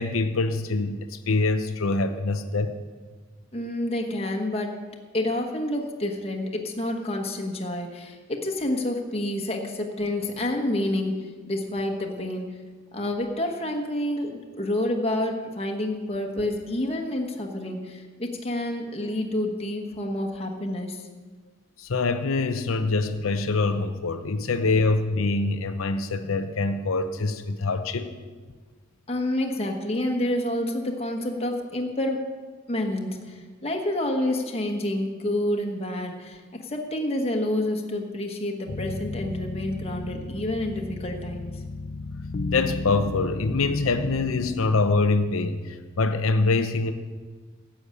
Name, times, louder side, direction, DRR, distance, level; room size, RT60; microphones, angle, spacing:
voice 1, 0.0-2.7 21.8-28.1 42.5-46.9, left 3 dB, 85° left, 8 dB, 0.7 m, -24 dB
voice 2, 3.5-4.8 5.1-12.6 12.9-21.1 29.1-32.3 32.7-41.6, left 1 dB, 30° left, 1 dB, 1.3 m, -28 dB
sound 1, 38.7-45.7, left 2 dB, 45° left, 0.6 m, -34 dB
13.0 x 7.2 x 8.4 m, 1.5 s
head